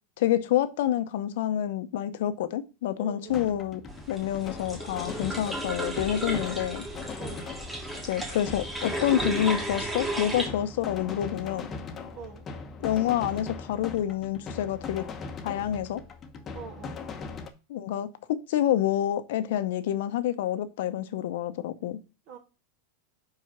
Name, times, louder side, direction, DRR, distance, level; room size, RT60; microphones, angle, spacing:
voice 1, 0.2-3.8 4.1-6.8 8.0-11.7 12.8-15.0 15.4-16.0 17.7-22.0, left 11 dB, 70° left, 11 dB, 0.8 m, -28 dB
voice 2, 3.0-3.4 7.2-7.5 12.1-12.5 16.5-17.0 22.3-22.4, right 6 dB, 55° right, 3 dB, 2.1 m, -43 dB
sound 1, 3.3-17.5, left 4 dB, 25° left, 0.9 m, -40 dB
sound 2, 3.9-10.5, right 1 dB, 10° right, 1.7 m, -34 dB
4.8 x 4.7 x 5.7 m, 0.32 s
supercardioid pair, 125°, 0 cm